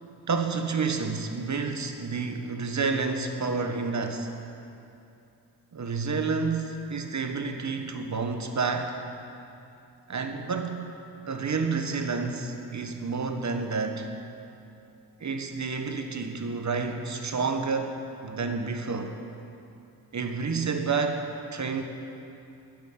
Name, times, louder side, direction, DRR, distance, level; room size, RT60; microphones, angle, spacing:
voice 1, 0.3-4.3 5.7-9.0 10.1-10.9 11.2-14.1 15.2-19.2 20.1-21.8, right 4 dB, 40° right, 5 dB, 1.2 m, -29 dB
9.1 x 7.4 x 9.2 m, 2.7 s
cardioid pair, 55°, 42 cm